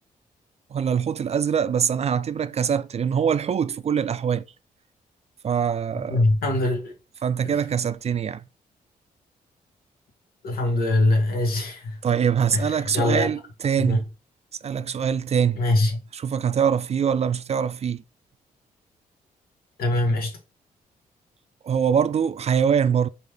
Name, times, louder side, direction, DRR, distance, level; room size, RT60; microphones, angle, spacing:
voice 1, 0.7-4.4 5.4-6.2 7.2-8.4 12.0-14.0 14.6-15.6 16.1-18.0 21.6-23.1, right 7 dB, 45° right, 0.4 m, -23 dB
voice 2, 6.1-6.9 7.4-7.6 10.4-12.0 12.5-12.7 12.9-13.3 13.8-14.0 15.6-16.0 19.8-20.4, left 2 dB, 75° left, 1.3 m, -22 dB
5.0 x 2.5 x 3.3 m
cardioid pair, 70°, 16 cm